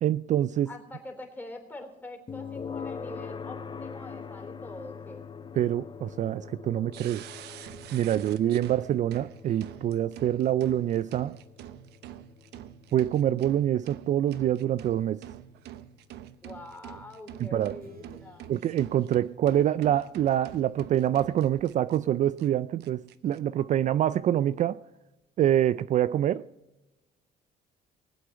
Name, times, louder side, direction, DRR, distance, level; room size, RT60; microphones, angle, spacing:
voice 1, 0.0-0.7 5.5-7.3 7.9-11.4 12.9-15.2 17.4-17.7 18.5-24.8 25.4-26.4, right 11 dB, 45° right, 0.4 m, -26 dB
voice 2, 0.6-5.2 16.4-18.5, left 2 dB, 10° left, 3.3 m, -44 dB
sound 1, 2.3-17.2, left 6 dB, 25° left, 0.7 m, -44 dB
sound 2, 6.9-22.0 22.4-22.5 22.8-23.4, right 12 dB, 75° right, 0.8 m, -46 dB
sound 3, 17.8-20.5, right 3 dB, 60° right, 2.3 m, -56 dB
20.0 x 8.1 x 5.8 m
cardioid pair, 110°, 17 cm